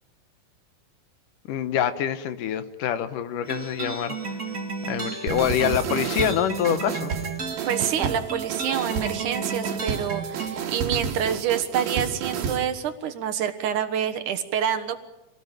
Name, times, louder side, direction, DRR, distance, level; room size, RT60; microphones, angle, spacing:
voice 1, 1.5-4.2 4.9-7.1, left 10 dB, 75° left, 11 dB, 2.4 m, -25 dB
sound 1, 3.4-10.6, right 5 dB, 35° right, 1.7 m, -33 dB
sound 2, 5.3-12.7, right 6 dB, 90° right, 3.6 m, -31 dB
voice 2, 7.7-15.0, right 9 dB, 65° right, 8 dB, 2.6 m, -27 dB
25.5 x 18.0 x 9.0 m, 0.99 s
omnidirectional pair, 4.0 m